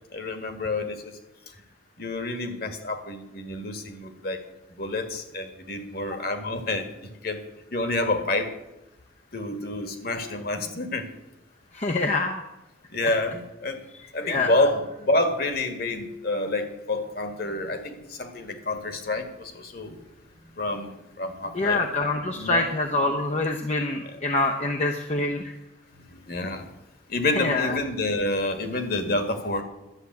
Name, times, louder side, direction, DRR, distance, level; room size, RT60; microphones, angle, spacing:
voice 1, 0.1-1.1 2.0-4.4 4.7-6.9 7.2-7.4 7.7-8.5 9.3-11.1 12.9-13.8 14.1-20.0 20.6-21.8 22.3-22.7 24.0-24.2 26.1-26.7 27.1-29.6, left 2 dB, 50° left, 7 dB, 1.9 m, -28 dB
voice 2, 11.7-12.4 13.0-13.1 14.2-14.5 21.5-25.5 27.4-27.8, left 2 dB, 35° left, 3 dB, 0.8 m, -25 dB
11.5 x 7.3 x 9.3 m, 0.98 s
head